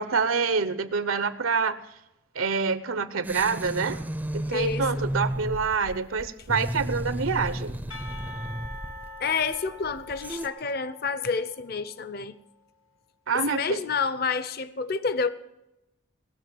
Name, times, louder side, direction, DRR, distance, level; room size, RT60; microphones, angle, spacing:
voice 1, 0.0-1.8 2.3-4.0 4.3-7.7 13.3-13.8, right 5 dB, 85° right, 13 dB, 0.9 m, -26 dB
sound 1, 3.2-10.5, right 1 dB, 10° right, 0.5 m, -33 dB
voice 2, 4.5-5.1 9.2-12.3 13.3-15.3, left 5 dB, 45° left, 14 dB, 0.7 m, -29 dB
Percussion / Church bell, 7.9-12.3, left 2 dB, 75° left, 1.6 m, -44 dB
19.5 x 6.7 x 7.8 m, 0.90 s
head